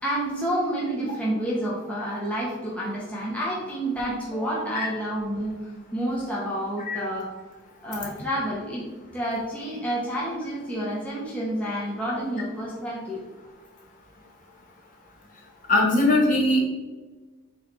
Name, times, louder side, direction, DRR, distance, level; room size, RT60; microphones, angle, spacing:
voice 1, 0.0-7.3 7.8-8.8 9.1-13.2, right 1 dB, 5° left, -6 dB, 1.1 m, -29 dB
voice 2, 15.7-16.6, left 2 dB, 40° left, -3 dB, 1.7 m, -20 dB
7.6 x 3.3 x 4.2 m, 1.2 s
head